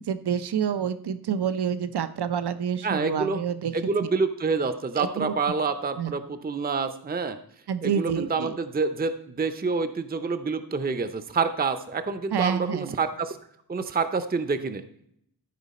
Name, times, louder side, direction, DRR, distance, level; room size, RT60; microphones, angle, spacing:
voice 1, 0.1-3.7 5.0-5.4 6.0-6.1 7.7-8.6 12.3-13.0, right 8 dB, 80° right, 12 dB, 0.6 m, -28 dB
voice 2, 2.8-3.4 3.7-7.4 7.8-13.4 13.7-14.8, right 4 dB, 25° right, 10 dB, 0.5 m, -27 dB
13.5 x 4.9 x 4.1 m, 0.71 s
wide cardioid pair, 75°, 39 cm